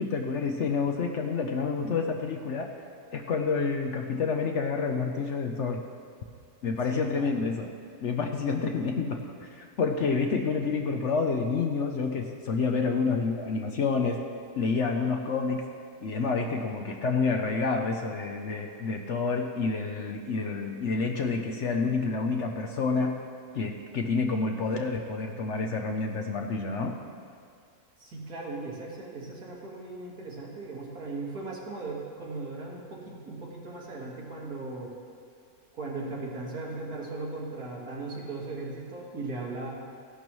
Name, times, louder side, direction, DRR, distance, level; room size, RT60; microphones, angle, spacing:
voice 1, 0.0-2.8 3.1-5.8 6.6-7.7 8.0-14.3 14.6-15.7 16.0-23.3 23.5-27.0, left 4 dB, 60° left, 3 dB, 0.9 m, -28 dB
voice 2, 6.9-7.3 28.0-34.9 35.7-39.7, right 3 dB, 70° right, -4 dB, 2.4 m, -38 dB
15.5 x 11.5 x 3.1 m, 2.3 s
omnidirectional pair, 1.6 m